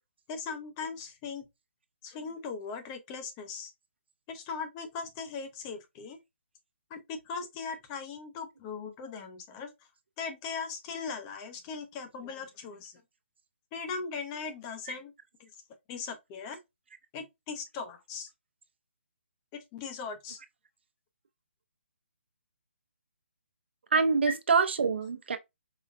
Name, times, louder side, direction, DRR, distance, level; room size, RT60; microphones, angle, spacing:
voice 1, 0.3-1.5 2.0-3.7 4.3-6.2 6.9-9.7 10.2-12.9 13.7-15.1 15.4-15.5 15.9-16.6 17.1-18.3 19.5-20.4 24.2-24.4, left 5 dB, 15° left, 0.6 m, -39 dB
voice 2, 23.9-25.4, right 5 dB, 60° right, 0.8 m, -25 dB
4.8 x 2.2 x 2.5 m
hypercardioid pair, 165°, 7 cm